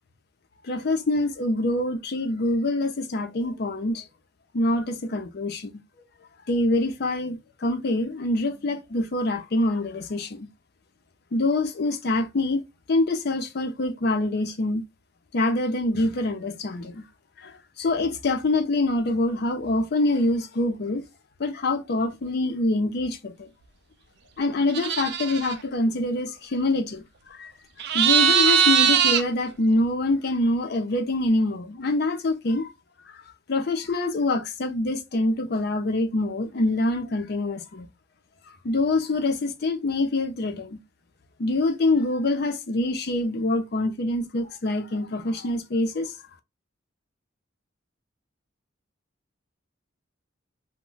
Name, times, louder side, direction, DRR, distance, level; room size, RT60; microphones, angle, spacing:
voice 1, 0.6-4.0 4.5-5.8 6.5-10.5 11.3-12.6 12.9-14.8 15.3-17.0 17.4-21.0 21.4-23.5 24.4-27.0 27.3-27.5 27.9-32.7 33.5-37.9 38.6-40.8 41.4-46.1, left 2 dB, 55° left, 0.5 m, -25 dB
sound 1, 24.7-25.5 27.8-29.2, right 8 dB, 60° right, 0.4 m, -20 dB
2.2 x 2.1 x 3.7 m
head